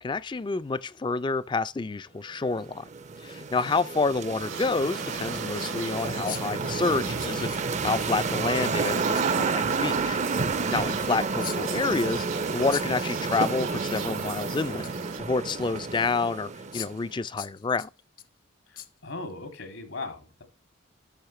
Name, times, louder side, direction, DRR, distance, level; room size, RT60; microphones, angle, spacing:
voice 1, 0.0-2.9 3.2-10.2 10.7-12.3 12.5-14.9 15.2-17.9, left 3 dB, 25° left, 0.4 m, -28 dB
sound 1, 2.6-17.1, right 4 dB, 35° right, 0.5 m, -30 dB
sound 2, 4.2-4.3 5.0-5.1 6.2-6.6 7.2-8.0 9.1-9.4 11.4-11.9 12.7-13.5 13.8-14.0 14.4-15.1 15.7-15.8 16.7-17.1 17.4-18.3 18.7-18.9 19.3-19.4, left 11 dB, 45° left, 0.7 m, -40 dB
sound 3, 4.4-15.2, right 6 dB, 90° right, 2.5 m, -40 dB
voice 2, 18.7-20.4, left 3 dB, 85° left, 2.6 m, -38 dB
11.5 x 6.5 x 3.1 m
head